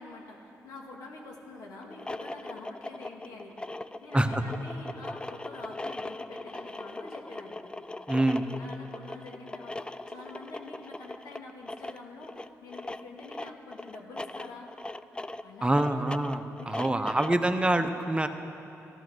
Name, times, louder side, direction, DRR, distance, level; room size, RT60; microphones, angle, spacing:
voice 1, 0.0-3.6 4.0-7.6 8.5-14.7 15.4-16.2 16.6-17.2 17.5-17.6, left 3 dB, 85° left, 0 dB, 2.2 m, -46 dB
sound 1, 1.8-17.5, left 2 dB, 15° left, 0.5 m, -40 dB
voice 2, 8.1-8.5 15.6-18.3, right 1 dB, 15° right, 7 dB, 1.0 m, -26 dB
15.0 x 13.0 x 6.4 m, 2.8 s
supercardioid pair, 60°, 6 cm